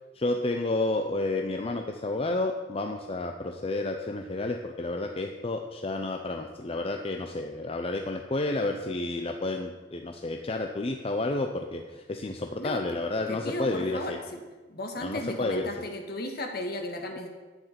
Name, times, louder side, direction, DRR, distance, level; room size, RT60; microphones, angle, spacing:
voice 1, 0.1-14.2 15.0-15.7, left 2 dB, 30° left, 4 dB, 0.6 m, -30 dB
voice 2, 13.3-14.4 14.7-17.3, left 1 dB, 55° left, 3 dB, 1.8 m, -35 dB
11.0 x 9.2 x 5.9 m, 1.3 s
head